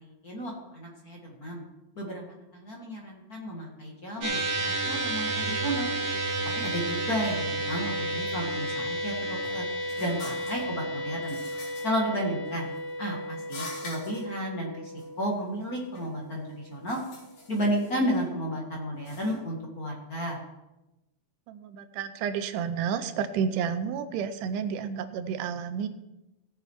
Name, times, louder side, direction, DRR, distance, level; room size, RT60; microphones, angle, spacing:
voice 1, 0.2-1.6 2.0-2.2 2.5-5.9 6.6-9.6 10.0-11.4 11.8-12.7 13.0-14.9 15.2-17.0 17.5-20.4, equal, 35° left, -1 dB, 1.9 m, -32 dB
sound 1, 4.2-16.7, right 1 dB, 50° right, 2.6 m, -32 dB
sound 2, 6.2-6.5 6.9-7.4 8.1-8.3 9.0-10.7 11.2-11.8 12.5-12.9 13.4-14.2 15.0-15.1 15.4-16.1 16.5-18.3 18.9-19.4, left 3 dB, 80° left, 5.2 m, -45 dB
voice 2, 21.5-25.9, right 7 dB, 85° right, 10 dB, 2.3 m, -31 dB
17.5 x 6.8 x 4.6 m, 0.97 s
omnidirectional pair, 3.6 m